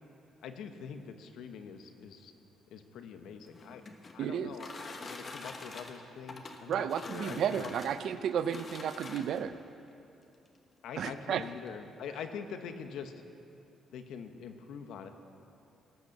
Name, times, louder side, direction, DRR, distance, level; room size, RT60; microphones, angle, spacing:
voice 1, 0.4-2.3 2.7-3.8 4.1-7.7 10.8-13.1 13.9-15.1, left 7 dB, 80° left, 7 dB, 0.9 m, -44 dB
sound 1, 3.4-9.6 10.5-10.6 11.0-11.1 11.4-11.7, left 3 dB, 40° left, 1.2 m, -46 dB
voice 2, 4.2-4.5 6.7-9.6 11.0-11.4, right 8 dB, 70° right, 12 dB, 0.5 m, -32 dB
17.5 x 6.6 x 6.6 m, 2.6 s
cardioid pair, 90°, 0 cm